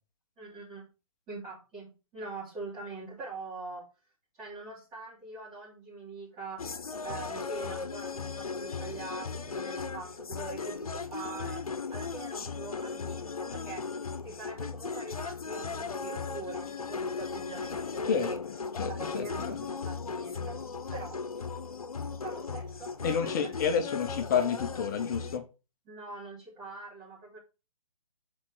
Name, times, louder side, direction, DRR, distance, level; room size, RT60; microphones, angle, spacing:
voice 1, 0.4-0.9 1.3-3.9 4.4-6.7 7.0-13.9 14.2-18.4 18.9-20.6 20.9-21.2 22.2-23.5 25.9-27.4, right 3 dB, 20° right, -9 dB, 2.8 m, -43 dB
sound 1, 6.6-25.4, left 5 dB, 80° left, 1.0 m, -37 dB
voice 2, 18.8-19.6 23.0-25.4, left 7 dB, 30° left, 6 dB, 1.0 m, -30 dB
5.7 x 4.4 x 6.4 m, 0.29 s
hypercardioid pair, 145°, 18 cm